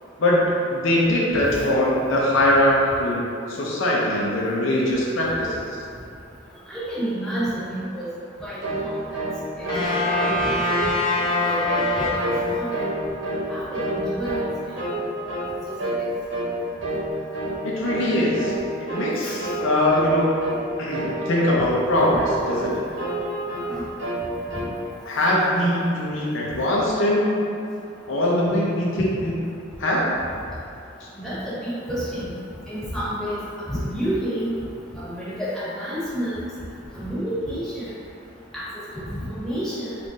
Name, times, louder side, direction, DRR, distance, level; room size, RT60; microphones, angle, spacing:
voice 1, 0.7-3.2 3.5-5.7 17.6-18.5 18.9-20.3 20.8-22.9 25.1-27.4 28.1-29.4 29.8-30.1, left 1 dB, 65° left, -5 dB, 0.6 m, -22 dB
voice 2, 6.7-8.0 8.4-9.2 10.0-10.5 11.4-12.8 13.5-13.6 13.9-14.3 19.2-19.4 23.7-23.8 31.2-32.2 32.7-33.4 33.7-34.5 35.0-36.5 36.9-37.8 38.5-38.6 38.9-39.8, equal, ahead, -13 dB, 1.4 m, -29 dB
sound 1, 8.6-8.9 9.1-9.4 9.6-10.9 11.2-11.4 11.7-11.9 12.2-12.4 12.7-13.5 13.7-14.5 14.8-15.0 15.3-15.5 15.8-16.0 16.3-16.5 16.8-17.1 17.3-17.6 17.8-18.1 18.4-18.6 18.9-19.1 19.4-19.6 19.9-20.1 20.4-20.6 20.9-21.7 22.0-22.7 23.0-23.7 24.0-24.7, right 1 dB, 65° right, 1.0 m, -28 dB
sound 2, 9.7-12.9, left 2 dB, 25° left, 0.7 m, -24 dB
3.7 x 2.5 x 4.0 m, 2.5 s
head